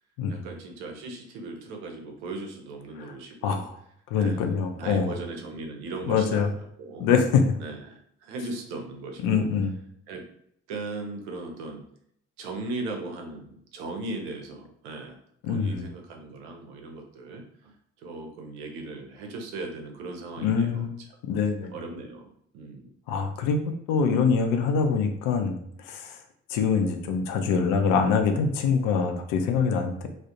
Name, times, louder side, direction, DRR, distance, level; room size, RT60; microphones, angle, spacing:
voice 1, 0.3-3.6 4.2-6.5 6.8-7.1 7.6-9.5 10.1-10.2 10.7-11.8 12.4-15.2 15.5-17.7 18.0-20.9 21.7-22.9, right 2 dB, 80° right, 3 dB, 0.5 m, -38 dB
voice 2, 4.1-5.1 6.1-6.5 7.0-7.6 9.2-9.7 15.4-15.9 20.4-21.0 21.2-21.7 23.1-23.6 23.9-25.6 25.8-26.2 26.5-30.1, left 5 dB, 70° left, 6 dB, 0.5 m, -24 dB
2.4 x 2.0 x 2.7 m, 0.70 s
hypercardioid pair, 45°, 34 cm